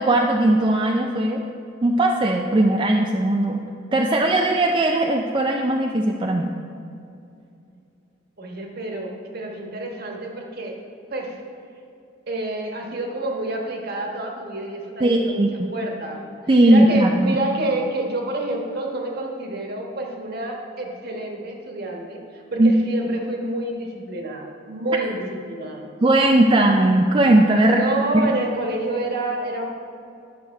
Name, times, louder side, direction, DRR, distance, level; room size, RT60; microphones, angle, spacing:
voice 1, 0.0-1.4 1.8-3.6 3.9-6.5 15.0-15.7 16.5-17.4 22.6-22.7 26.0-27.8 28.1-28.3, right 1 dB, 25° right, 1 dB, 0.4 m, -18 dB
voice 2, 8.4-10.8 11.1-11.4 12.3-16.3 16.6-25.9 27.5-29.7, right 2 dB, 55° right, 1 dB, 1.3 m, -28 dB
9.9 x 6.6 x 4.6 m, 2.6 s
head